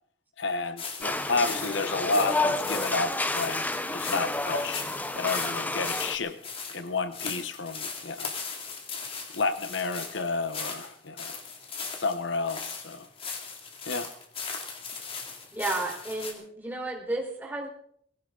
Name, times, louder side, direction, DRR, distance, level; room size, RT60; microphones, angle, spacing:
voice 1, 0.4-3.6 3.9-4.8 5.1-6.4 6.7-8.3 9.3-11.4 12.0-13.1 13.9-14.1, left 3 dB, 80° left, 11 dB, 1.0 m, -30 dB
sound 1, 0.8-16.3, left 5 dB, 30° left, 2.6 m, -38 dB
sound 2, 1.0-6.2, left 2 dB, 10° left, 0.7 m, -30 dB
voice 2, 15.5-17.7, right 2 dB, 10° right, -2 dB, 4.1 m, -32 dB
19.5 x 17.0 x 3.9 m, 0.66 s
head